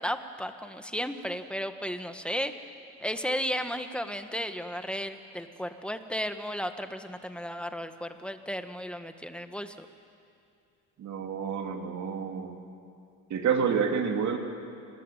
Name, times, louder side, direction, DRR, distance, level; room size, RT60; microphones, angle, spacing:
voice 1, 0.0-2.5 3.0-9.9, equal, 5° left, 8 dB, 1.5 m, -34 dB
voice 2, 11.0-12.6 13.3-14.4, right 6 dB, 65° right, 3 dB, 3.0 m, -28 dB
26.0 x 19.5 x 9.2 m, 2.4 s
cardioid pair, 90°, 30 cm